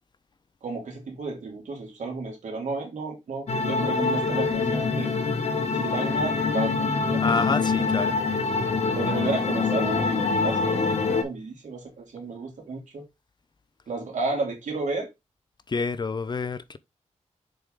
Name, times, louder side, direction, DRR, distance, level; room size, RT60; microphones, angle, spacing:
voice 1, 0.6-5.1 5.7-7.4 8.9-13.1 13.9-15.1, right 3 dB, 85° right, 2.7 m, -32 dB
sound 1, 3.5-11.2, left 4 dB, 60° left, 1.2 m, -25 dB
voice 2, 7.2-8.2 15.7-16.8, left 4 dB, 35° left, 0.5 m, -27 dB
6.9 x 4.8 x 3.7 m
wide cardioid pair, 120°, 12 cm